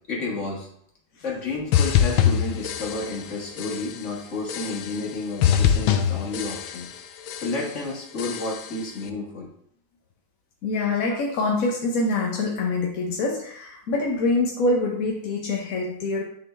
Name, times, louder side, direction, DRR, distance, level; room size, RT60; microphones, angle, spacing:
voice 1, 0.1-0.7 1.2-6.9 7.4-9.5, left 3 dB, 40° left, -2 dB, 1.7 m, -31 dB
sound 1, 1.7-3.3 3.6-4.1 4.5-5.1 5.4-7.0 7.3-7.8 8.2-8.8, left 9 dB, 80° left, 1.3 m, -24 dB
voice 2, 10.6-16.2, left 2 dB, 60° left, 0 dB, 0.9 m, -25 dB
9.4 x 3.8 x 3.3 m, 0.68 s
omnidirectional pair, 2.3 m